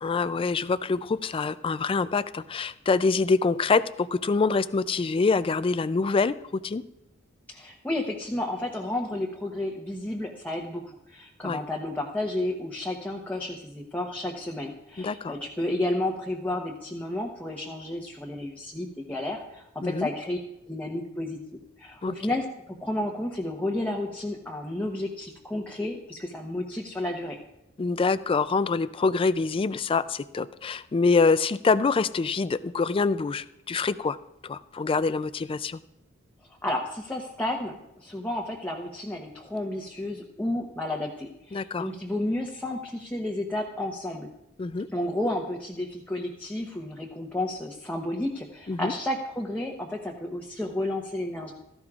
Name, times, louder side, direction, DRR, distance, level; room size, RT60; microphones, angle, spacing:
voice 1, 0.0-6.3 6.6-6.8 11.4-11.6 15.0-15.4 19.8-20.1 22.0-22.1 27.8-34.2 34.4-35.8 41.5-41.9 44.6-44.9 48.7-48.9, left 4 dB, 25° left, 15 dB, 0.3 m, -25 dB
voice 2, 7.5-10.8 11.1-20.4 20.7-21.4 21.8-27.4 36.6-44.3 44.9-51.5, left 1 dB, 10° left, -1 dB, 0.9 m, -31 dB
16.5 x 14.5 x 2.4 m, 0.87 s
head